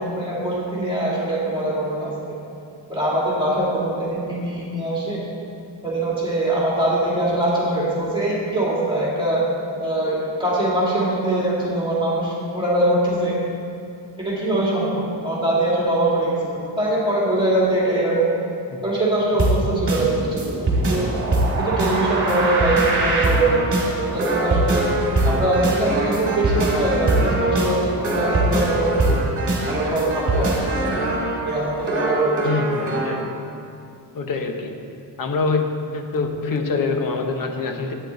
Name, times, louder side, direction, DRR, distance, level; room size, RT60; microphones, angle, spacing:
voice 1, 0.0-2.1 2.9-5.2 5.8-9.4 9.8-13.4 14.2-16.4 16.8-18.3 18.8-21.1 21.6-23.6 23.9-24.9 25.2-29.2 29.7-31.0 31.5-32.4, right 1 dB, 10° right, -6 dB, 2.1 m, -22 dB
sound 1, 19.4-33.2, right 2 dB, 30° right, 2.0 m, -22 dB
voice 2, 20.9-21.4 32.4-33.3 34.1-35.7 35.9-37.9, left 4 dB, 50° left, 5 dB, 0.9 m, -25 dB
12.0 x 8.8 x 3.9 m, 2.5 s
wide cardioid pair, 180°, 43 cm